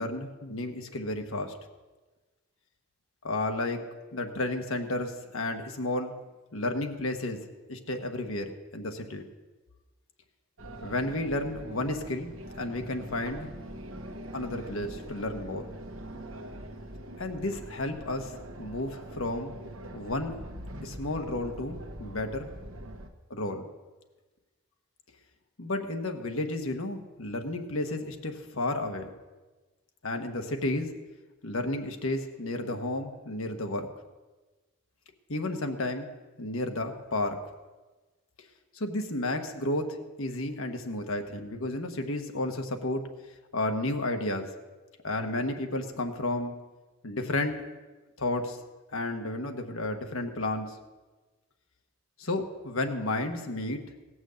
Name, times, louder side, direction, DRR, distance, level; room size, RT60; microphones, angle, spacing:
voice 1, 0.0-1.5 3.2-3.8 4.1-6.1 6.5-7.4 7.7-9.2 10.8-13.5 14.3-15.7 17.2-19.5 19.9-20.4 20.8-22.5 23.3-23.7 25.6-29.1 30.0-30.9 31.4-33.9 35.3-36.1 36.4-37.4 38.7-43.0 43.5-44.5 45.0-46.5 47.0-47.6 48.2-48.6 48.9-50.8 52.2-53.8, left 2 dB, 70° left, 5 dB, 1.4 m, -32 dB
sound 1, 10.6-23.1, right 1 dB, 65° right, 1.2 m, -43 dB
18.5 x 6.3 x 7.9 m, 1.2 s
head